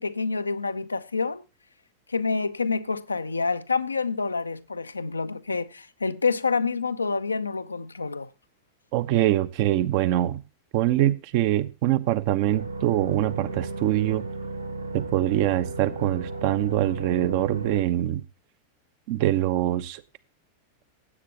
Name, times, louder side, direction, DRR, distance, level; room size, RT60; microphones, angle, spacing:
voice 1, 0.0-1.4 2.1-8.3, left 4 dB, 80° left, 0.7 m, -27 dB
voice 2, 8.9-10.4 10.7-14.2 14.9-18.2 19.1-20.0, right 14 dB, 45° right, 0.9 m, -24 dB
sound 1, 12.5-17.9, right 2 dB, 80° right, 1.4 m, -35 dB
16.0 x 8.4 x 2.9 m
figure-of-eight pair, 90°, 0 cm